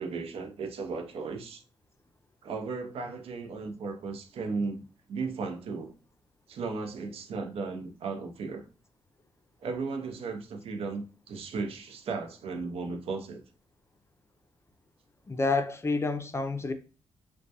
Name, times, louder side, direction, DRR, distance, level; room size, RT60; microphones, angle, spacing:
voice 1, 0.0-1.6 2.4-4.8 5.1-5.9 6.5-8.6 9.6-13.4, right 4 dB, 65° right, 0.5 m, -35 dB
voice 2, 15.3-16.7, left 3 dB, 25° left, 0.4 m, -28 dB
2.2 x 2.1 x 2.7 m
supercardioid pair, 50°, 10 cm